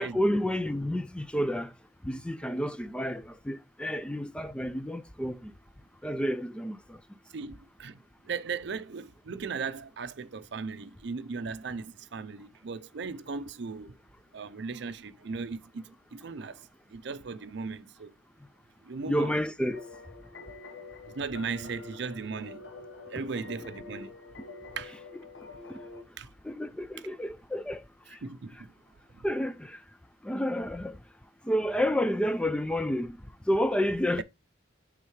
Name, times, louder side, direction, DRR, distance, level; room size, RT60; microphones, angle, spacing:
voice 1, 0.0-1.7 2.0-5.5 6.0-7.0 19.0-19.8 25.7-25.8 26.4-28.2 29.2-29.8 30.2-31.0 31.4-33.2 33.5-34.2, equal, 5° left, 0.3 m, -30 dB
voice 2, 7.3-8.0 8.2-13.9 14.3-16.6 16.9-18.1 18.8-19.3 21.1-22.6 23.1-24.1 24.8-25.0 26.2-26.3 28.2-28.7 29.1-29.2, right 5 dB, 65° right, 0.5 m, -37 dB
sound 1, 19.7-26.0, left 3 dB, 70° left, 1.1 m, -46 dB
9.0 x 3.7 x 3.0 m
head